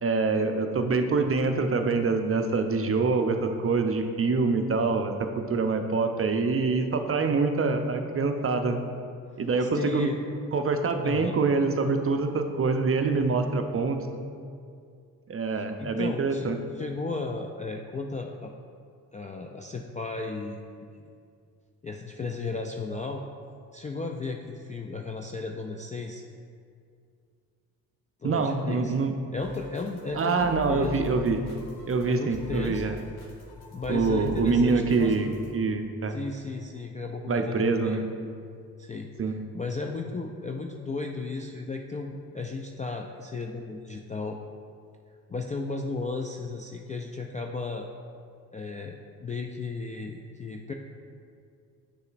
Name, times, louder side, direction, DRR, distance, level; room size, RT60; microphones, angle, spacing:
voice 1, 0.0-8.8 9.4-10.1 10.5-14.0 15.3-16.6 28.2-29.1 30.2-31.4 31.9-33.0 33.9-35.3 35.5-36.2 37.3-38.0 39.2-39.4, right 4 dB, 30° right, 6 dB, 0.6 m, -25 dB
voice 2, 9.6-10.2 11.0-11.4 15.5-16.5 16.8-18.5 19.1-20.6 20.9-21.1 21.8-23.2 23.7-26.2 28.2-28.9 29.3-31.2 32.1-32.8 33.7-35.2 36.1-38.1 38.8-44.4 45.3-47.9 48.5-50.7, left 3 dB, 20° left, 2 dB, 0.3 m, -35 dB
sound 1, 29.4-35.5, left 5 dB, 55° left, 1.3 m, -42 dB
7.7 x 6.5 x 2.5 m, 2.3 s
hypercardioid pair, 45°, 46 cm